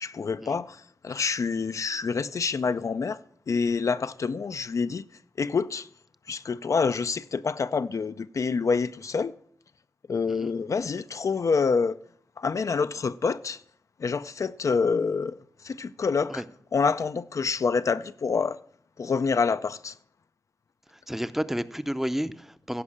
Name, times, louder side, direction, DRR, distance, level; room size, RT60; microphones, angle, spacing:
voice 1, 0.0-3.2 3.5-5.0 5.4-5.9 6.3-9.4 10.1-12.0 12.4-13.6 14.0-15.3 15.6-16.4 16.7-18.6 19.0-19.9, left 5 dB, 60° left, 0.4 m, -27 dB
voice 2, 20.9-22.8, equal, 5° right, 0.6 m, -31 dB
16.0 x 5.4 x 7.2 m
wide cardioid pair, 80°, 6 cm